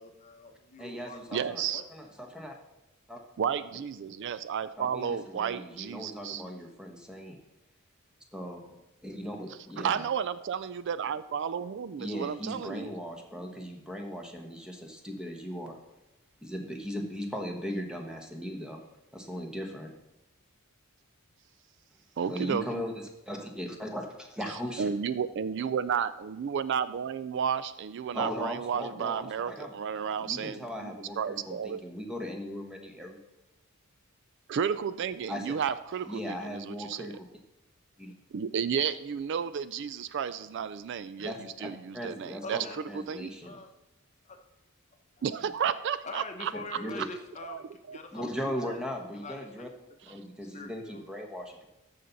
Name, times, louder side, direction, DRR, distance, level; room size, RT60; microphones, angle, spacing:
voice 1, 0.0-1.8 42.4-42.8 43.4-43.7 44.2-44.4 45.2-45.6 46.0-48.3 48.6-48.8 49.1-49.7 50.5-51.0, left 3 dB, 30° left, 5 dB, 0.9 m, -44 dB
voice 2, 0.8-1.6 1.9-2.5 3.1-3.2 4.8-7.4 8.3-8.8 9.0-10.0 12.0-15.8 16.4-18.8 19.1-19.9 22.3-24.9 28.1-29.7 30.0-33.2 35.3-35.6 36.1-37.3 38.0-38.1 41.2-41.7 41.9-43.6 46.5-47.1 48.1-49.7 50.1-51.7, equal, 5° right, 2 dB, 1.1 m, -38 dB
voice 3, 1.3-1.8 3.4-6.4 9.8-12.9 22.2-22.8 24.8-31.8 34.5-37.1 38.3-42.7 43.1-43.3 45.2-46.5 47.4-48.0, right 7 dB, 55° right, 14 dB, 0.3 m, -32 dB
14.0 x 5.8 x 4.0 m, 0.98 s
head